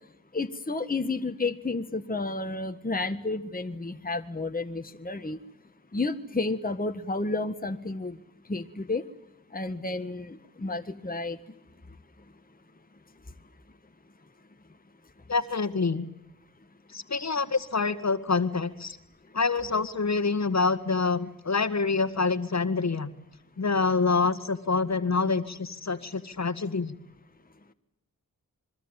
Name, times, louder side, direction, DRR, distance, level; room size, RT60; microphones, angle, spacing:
voice 1, 0.3-5.4 5.9-8.2 8.5-9.0 9.5-11.4, left 3 dB, 25° left, 7 dB, 1.6 m, -31 dB
voice 2, 15.3-16.1 16.9-19.0 19.3-23.1 23.6-27.0, left 4 dB, 50° left, 11 dB, 1.9 m, -26 dB
26.0 x 23.5 x 9.0 m, 0.81 s
cardioid pair, 55°, 35 cm